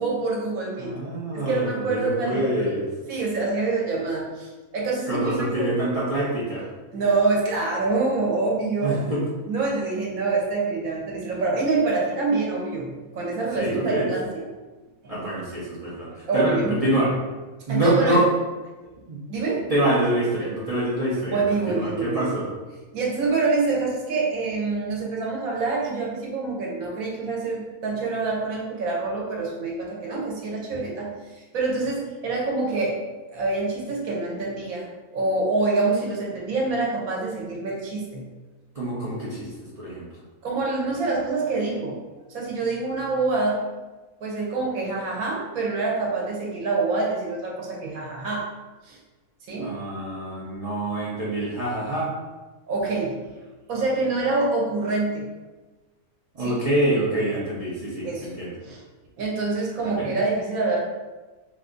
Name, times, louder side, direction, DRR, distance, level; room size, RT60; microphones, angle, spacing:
voice 1, 0.0-1.0 1.3-2.8 3.1-5.7 6.9-9.0 9.5-14.4 15.0-15.2 16.3-16.8 17.7-18.2 19.3-19.7 21.3-22.3 22.9-33.0 33.3-38.3 40.4-42.0 42.3-43.6 44.2-48.5 48.8-49.0 49.5-49.8 52.7-53.3 53.7-55.3 56.4-56.6 58.0-58.3 58.6-58.8 59.2-60.8, right 3 dB, 75° right, -3 dB, 1.2 m, -26 dB
voice 2, 0.8-2.9 5.1-6.7 8.8-9.2 13.6-14.1 15.1-17.1 17.7-18.2 19.1-19.2 19.7-22.5 38.7-39.5 39.8-40.0 49.6-52.1 56.3-58.5 59.8-60.1, right 1 dB, 50° right, -7 dB, 0.4 m, -25 dB
2.7 x 2.5 x 3.7 m, 1.2 s
omnidirectional pair, 1.5 m